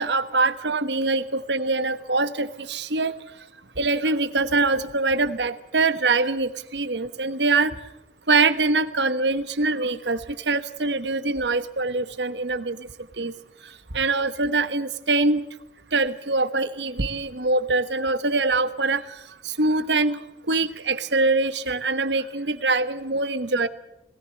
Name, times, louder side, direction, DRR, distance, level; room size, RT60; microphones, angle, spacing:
voice 1, 0.0-3.1 3.8-7.8 8.3-12.9 13.1-13.3 13.6-15.5 15.9-23.7, right 3 dB, 80° right, 12 dB, 1.2 m, -24 dB
20.0 x 17.5 x 7.8 m, 0.87 s
head